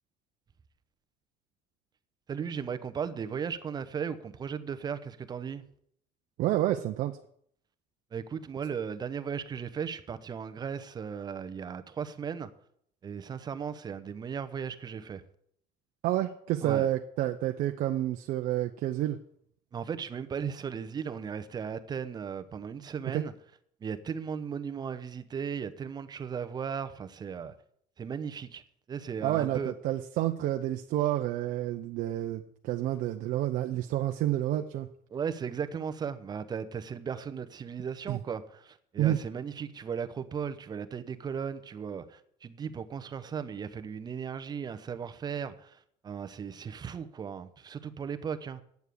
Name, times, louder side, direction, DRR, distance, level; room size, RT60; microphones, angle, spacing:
voice 1, 2.3-5.7 8.1-12.5 13.0-15.2 16.6-16.9 19.7-23.3 23.8-27.5 28.0-28.6 28.9-29.7 35.1-45.8 46.0-48.6, right 7 dB, 25° right, 0.8 m, -36 dB
voice 2, 6.4-7.2 16.0-19.2 23.1-23.2 29.2-34.9 38.1-38.2 39.0-39.2, right 13 dB, 60° right, 0.7 m, -29 dB
9.3 x 7.3 x 8.4 m
cardioid pair, 155°, 16 cm